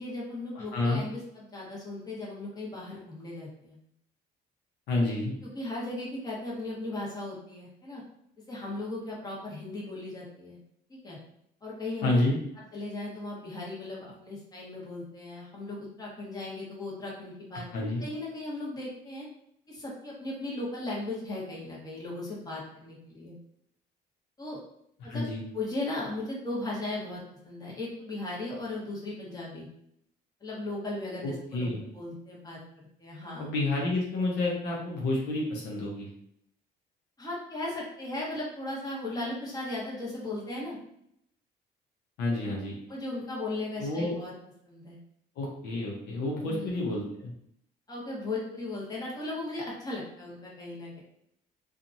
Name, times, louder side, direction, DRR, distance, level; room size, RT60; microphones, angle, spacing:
voice 1, 0.0-3.8 5.4-8.0 8.5-10.6 10.9-11.2 11.6-12.2 12.7-17.6 18.0-19.3 19.7-23.3 24.4-24.6 25.0-25.2 25.5-29.7 30.4-33.5 37.2-40.8 42.9-44.3 44.6-45.0 46.5-46.8 47.9-51.0, left 2 dB, 20° left, -5 dB, 1.2 m, -37 dB
voice 2, 0.5-1.0 4.9-5.3 12.0-12.4 17.7-18.0 25.0-25.4 31.2-31.8 33.4-36.1 42.2-42.8 43.7-44.1 45.4-47.3, left 2 dB, 85° left, -3 dB, 0.9 m, -29 dB
2.8 x 2.5 x 2.6 m, 0.72 s
cardioid pair, 110°, 17 cm